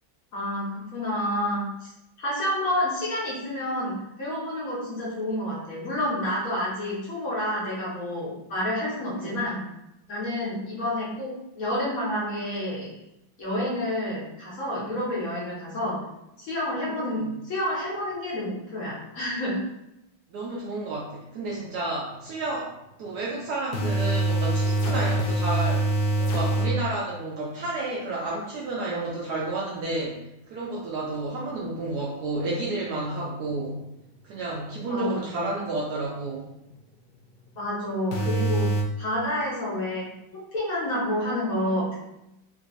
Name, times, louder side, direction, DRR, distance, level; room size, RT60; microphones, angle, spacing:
voice 1, 0.3-1.9 2.2-9.6 10.1-12.9 13.4-16.0 16.4-19.6 34.9-35.6 37.6-42.0, left 1 dB, 50° left, -7 dB, 1.2 m, -29 dB
voice 2, 16.9-17.3 20.3-22.7 23.0-25.9 26.2-30.2 30.5-33.8 34.2-36.5, right 2 dB, 70° right, -4 dB, 1.0 m, -31 dB
sound 1, 23.7-26.8 38.1-38.8, right 2 dB, 80° left, 1.3 m, -24 dB
3.8 x 2.7 x 2.4 m, 0.87 s
omnidirectional pair, 2.1 m